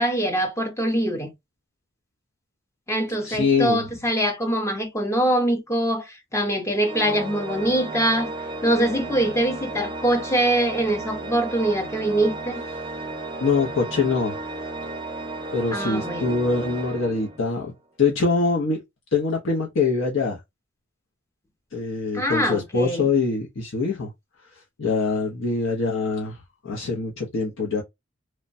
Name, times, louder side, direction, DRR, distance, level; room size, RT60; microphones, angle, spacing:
voice 1, 0.0-1.3 2.9-8.3 8.6-12.6 15.7-16.3 22.1-23.1, right 1 dB, 15° left, 0.7 m, -23 dB
voice 2, 3.2-3.8 13.4-14.4 15.5-17.7 18.0-18.8 19.1-20.4 21.7-24.1 24.8-26.4 26.6-27.8, left 4 dB, 65° left, 0.7 m, -24 dB
Organ, 6.8-17.7, right 2 dB, 25° right, 0.5 m, -34 dB
3.2 x 2.1 x 2.5 m
head